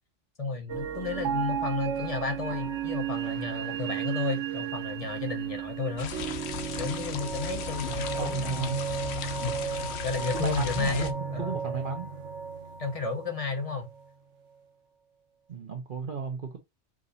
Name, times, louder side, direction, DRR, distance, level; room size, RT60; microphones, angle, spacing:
voice 1, 0.4-6.1 6.8-8.8 9.4-11.6 12.8-13.9, left 4 dB, 35° left, 0.9 m, -33 dB
sound 1, 0.7-14.1, right 7 dB, 80° right, 1.2 m, -34 dB
sound 2, 6.0-11.1, left 9 dB, 70° left, 0.9 m, -37 dB
voice 2, 7.8-8.8 10.3-12.1 15.5-16.6, right 5 dB, 50° right, 0.9 m, -34 dB
4.9 x 2.6 x 4.0 m
omnidirectional pair, 1.2 m